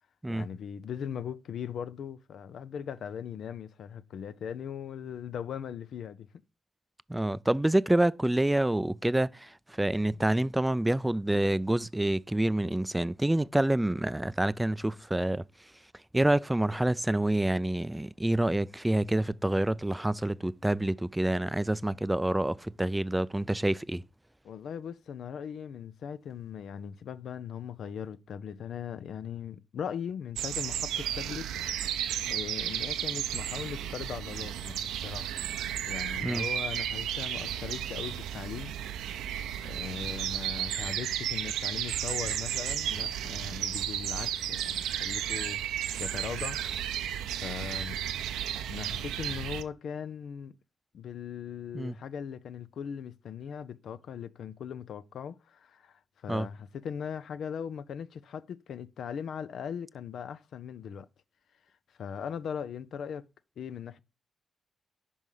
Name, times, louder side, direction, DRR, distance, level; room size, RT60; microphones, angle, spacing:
voice 1, 0.3-6.3 24.4-35.4 35.9-38.7 39.0-39.3 39.6-48.0 48.7-50.5 50.9-61.1 62.0-63.2 63.6-64.0, left 8 dB, 65° left, 0.5 m, -39 dB
voice 2, 7.1-9.5 9.8-15.4 16.1-24.0 36.2-36.4 51.7-51.9 56.3-56.5, right 1 dB, 10° right, 0.4 m, -27 dB
sound 1, 30.4-49.6, right 10 dB, 75° right, 0.5 m, -33 dB
5.4 x 5.3 x 4.8 m
hypercardioid pair, 40°, 0 cm